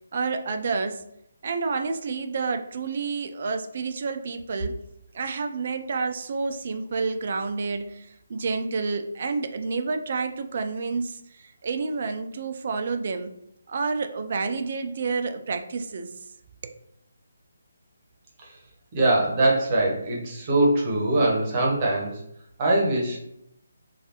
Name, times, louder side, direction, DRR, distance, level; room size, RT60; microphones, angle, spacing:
voice 1, 0.1-1.0 1.4-4.8 5.1-13.3 13.7-16.2 16.6-16.8, right 4 dB, 50° right, 7 dB, 0.3 m, -29 dB
voice 2, 18.9-22.2 22.6-23.2, right 2 dB, 30° right, -2 dB, 0.9 m, -22 dB
3.3 x 2.3 x 2.8 m, 0.77 s
figure-of-eight pair, 150°, 0 cm